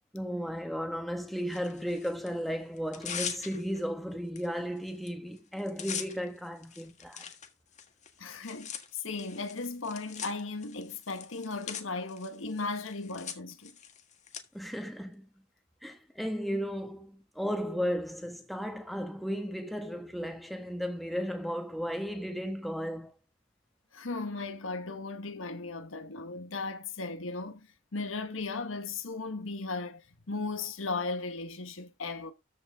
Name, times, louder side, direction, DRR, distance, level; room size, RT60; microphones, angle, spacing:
voice 1, 0.1-7.2 14.5-15.3 15.8-23.1, equal, ahead, 1.6 m, -35 dB
Tearing, 1.5-2.3 2.8-3.8 4.4-4.5 4.8-5.1 5.4-14.4, left 8 dB, 35° left, 1.6 m, -42 dB
voice 2, 8.2-13.7 23.9-30.0 30.3-32.3, left 3 dB, 90° left, 1.4 m, -36 dB
13.5 x 5.8 x 3.7 m
head